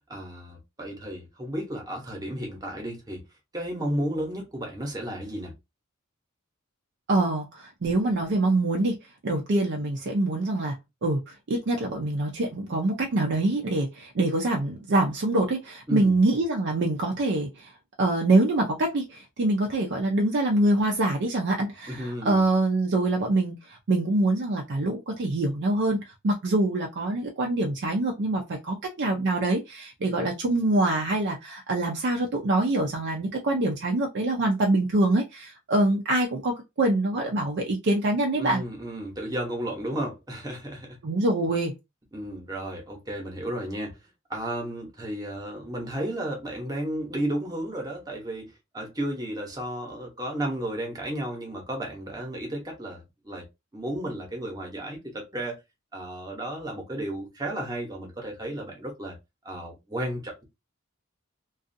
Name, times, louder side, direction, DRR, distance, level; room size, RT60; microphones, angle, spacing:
voice 1, 0.1-3.2 3.5-5.5 15.9-16.1 21.9-22.4 38.4-41.0 42.1-44.0 44.3-53.5 53.7-55.6 55.9-59.2 59.4-60.4, right 1 dB, 20° right, 0.9 m, -33 dB
voice 2, 7.1-9.0 9.2-10.8 11.0-17.7 18.0-38.6 41.0-41.7, right 2 dB, 55° right, 0.5 m, -25 dB
2.5 x 2.3 x 2.6 m
head